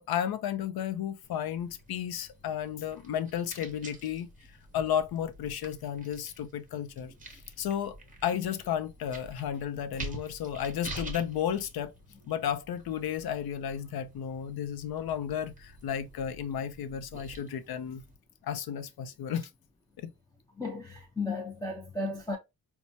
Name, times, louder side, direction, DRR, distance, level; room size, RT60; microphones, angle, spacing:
voice 1, 0.0-11.9 12.2-18.0 18.4-19.5 20.0-20.1, left 9 dB, 75° left, 0.6 m, -33 dB
sound 1, 1.2-18.2, right 2 dB, 20° right, 0.8 m, -48 dB
voice 2, 20.6-22.4, left 3 dB, 10° left, 0.4 m, -34 dB
4.3 x 2.2 x 2.6 m
wide cardioid pair, 145°, 38 cm